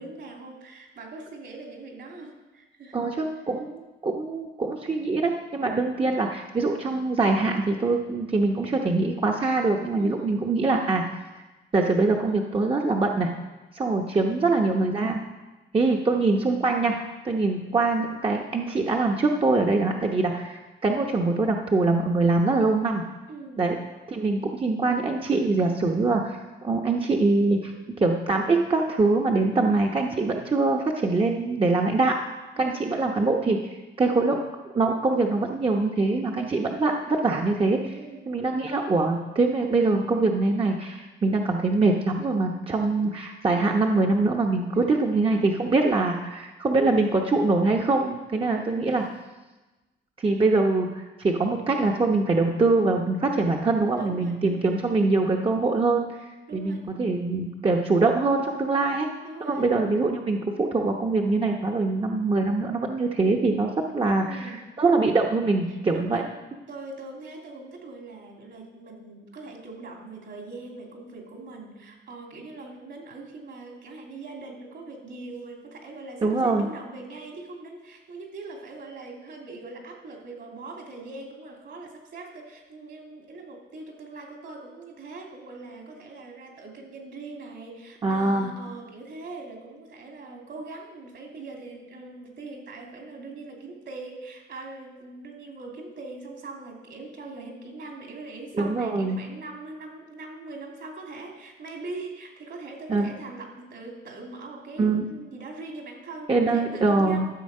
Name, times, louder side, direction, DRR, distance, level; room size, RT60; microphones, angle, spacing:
voice 1, 0.0-3.1 10.0-10.3 14.1-14.5 23.3-23.6 29.5-29.9 32.6-32.9 37.9-38.2 44.7-45.1 48.4-49.0 53.8-54.7 56.5-56.8 58.7-58.9 59.2-59.7 64.2-64.6 65.9-66.2 66.7-107.3, right 3 dB, 65° right, 1 dB, 2.9 m, -41 dB
voice 2, 2.9-11.0 11.7-13.3 13.7-15.2 15.7-17.0 17.2-23.0 23.6-23.8 24.1-27.7 28.0-32.2 32.6-33.6 34.0-34.4 34.7-38.0 38.3-49.0 50.2-59.1 59.4-66.2 76.2-76.7 88.0-88.5 98.6-99.2 102.9-103.1 104.8-105.0 106.3-107.3, right 3 dB, 30° right, 1 dB, 0.9 m, -23 dB
13.0 x 7.1 x 5.5 m, 1.1 s
cardioid pair, 90°, 20 cm